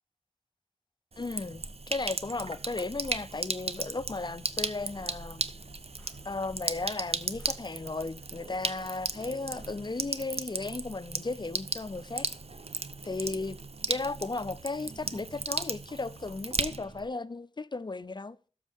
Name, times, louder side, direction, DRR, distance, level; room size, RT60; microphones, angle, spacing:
Sink (filling or washing), 1.1-17.1, right 3 dB, 55° right, 0.6 m, -36 dB
voice 1, 1.2-5.4 6.3-12.3 13.0-13.6 13.9-18.4, left 3 dB, 35° left, 0.4 m, -35 dB
sound 1, 4.4-10.0, left 1 dB, 10° left, 1.7 m, -57 dB
12.5 x 6.3 x 3.5 m
wide cardioid pair, 50°, 12 cm